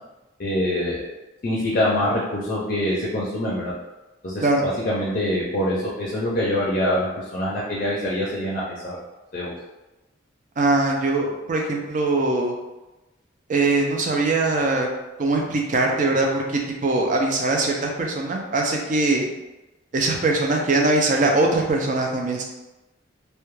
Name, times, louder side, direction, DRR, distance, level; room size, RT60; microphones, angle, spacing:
voice 1, 0.4-1.1 1.4-3.7 4.2-7.1 7.3-9.0 9.3-9.5, left 1 dB, 45° left, -6 dB, 0.5 m, -24 dB
voice 2, 10.6-12.5 13.5-14.9 15.2-19.3 19.9-22.4, right 2 dB, 40° right, 0 dB, 0.4 m, -21 dB
2.3 x 2.1 x 3.0 m, 1.0 s
head